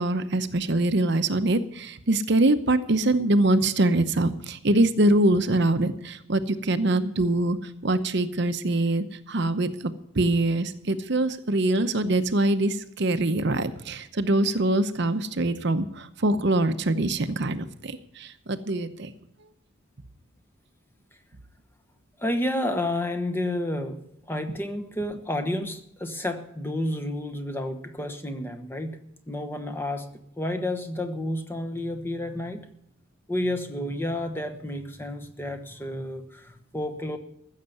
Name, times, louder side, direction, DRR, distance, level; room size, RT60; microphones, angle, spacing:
voice 1, 0.0-19.1, right 2 dB, 55° right, 10 dB, 0.8 m, -24 dB
voice 2, 22.2-29.0 29.3-30.1 30.4-32.6 33.3-37.2, left 1 dB, 10° left, 7 dB, 1.0 m, -30 dB
15.0 x 6.6 x 9.2 m, 0.77 s
head